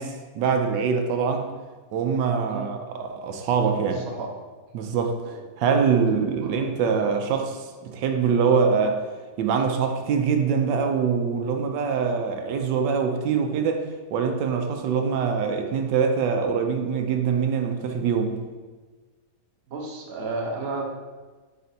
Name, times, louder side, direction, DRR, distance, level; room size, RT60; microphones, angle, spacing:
voice 1, 0.0-1.5 1.9-4.0 4.7-5.2 5.6-9.1 9.4-13.9 14.1-18.4, right 6 dB, 85° right, 5 dB, 1.3 m, -24 dB
voice 2, 2.5-2.8 3.9-4.3 5.2-5.4 6.4-6.5 19.7-20.8, right 3 dB, 45° right, 0 dB, 0.9 m, -32 dB
8.1 x 4.2 x 2.8 m, 1.3 s
omnidirectional pair, 1.9 m